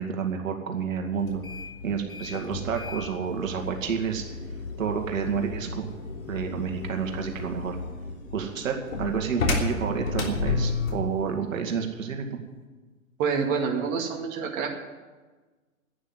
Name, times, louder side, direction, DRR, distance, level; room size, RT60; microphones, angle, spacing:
voice 1, 0.0-1.4 1.8-4.2 4.8-5.9 6.3-7.8 8.3-12.4, right 6 dB, 65° right, 3 dB, 2.4 m, -29 dB
sound 1, 1.2-11.1, left 3 dB, 75° left, 3.3 m, -33 dB
voice 2, 13.2-14.8, right 5 dB, 40° right, 1 dB, 2.1 m, -27 dB
11.0 x 9.8 x 9.6 m, 1.3 s
hypercardioid pair, 120°, 42 cm